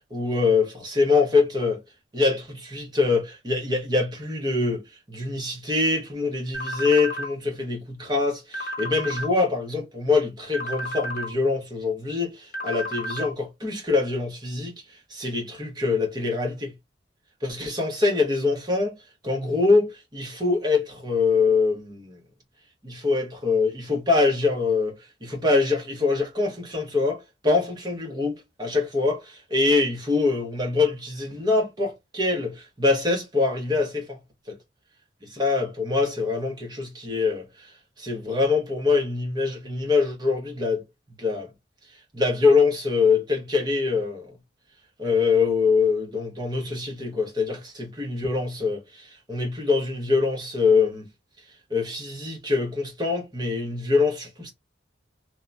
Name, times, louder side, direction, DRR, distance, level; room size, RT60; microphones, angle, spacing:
voice 1, 0.0-1.8 2.1-4.8 5.1-14.7 15.1-16.7 17.4-18.9 19.2-22.2 22.8-24.9 25.2-34.2 34.5-34.6 35.3-37.7 38.0-40.8 41.2-41.5 42.1-44.3 45.0-51.1 51.7-54.5, left 4 dB, 20° right, 0.8 m, -24 dB
sound 1, 6.5-7.3 8.5-9.3 10.5-11.3 12.5-13.3, equal, 45° left, 0.8 m, -32 dB
2.8 x 2.1 x 2.4 m
head